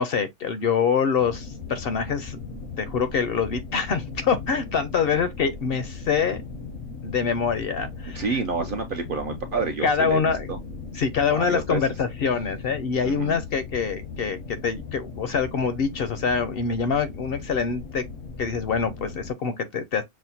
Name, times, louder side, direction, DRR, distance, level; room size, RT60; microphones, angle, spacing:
voice 1, 0.0-2.4 2.8-6.4 7.0-8.2 9.8-10.5 10.9-18.0 18.4-20.0, left 6 dB, 60° left, 0.7 m, -25 dB
sound 1, 1.2-19.3, left 4 dB, 85° left, 1.2 m, -38 dB
voice 2, 8.1-10.2 10.5-10.6 11.3-11.8 13.0-13.4, right 4 dB, 60° right, 0.6 m, -28 dB
6.3 x 2.1 x 2.7 m
omnidirectional pair, 1.3 m